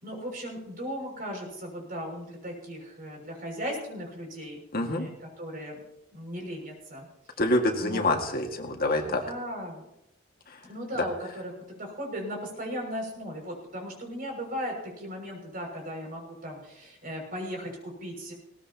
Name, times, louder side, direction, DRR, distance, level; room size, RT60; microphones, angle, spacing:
voice 1, 0.0-5.8 6.1-7.1 7.8-8.0 8.8-9.9 10.6-11.5 11.8-18.3, equal, 50° right, 1 dB, 6.3 m, -37 dB
voice 2, 4.7-5.1 7.4-9.2, left 1 dB, 50° left, 3 dB, 2.0 m, -26 dB
20.5 x 18.5 x 2.9 m, 0.80 s
head